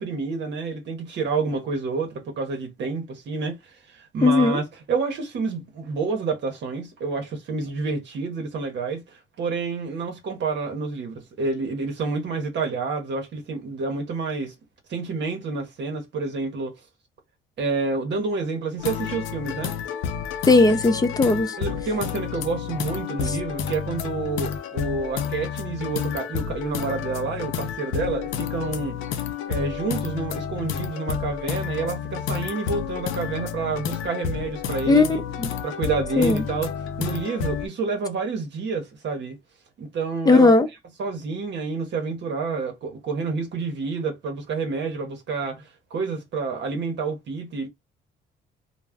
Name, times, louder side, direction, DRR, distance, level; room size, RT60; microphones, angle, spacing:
voice 1, 0.0-14.5 14.9-16.7 17.6-19.7 21.6-29.0 29.5-35.2 35.6-36.7 37.0-39.4 39.8-40.6 41.0-47.7, right 4 dB, 65° right, 0.8 m, -29 dB
voice 2, 4.2-4.6 20.5-21.5 34.9-35.1 35.4-35.5 36.2-36.4 40.3-40.7, left 3 dB, 20° left, 0.5 m, -17 dB
sound 1, 18.8-37.7, left 7 dB, 90° left, 0.5 m, -30 dB
2.3 x 2.1 x 3.4 m
cardioid pair, 90°, 20 cm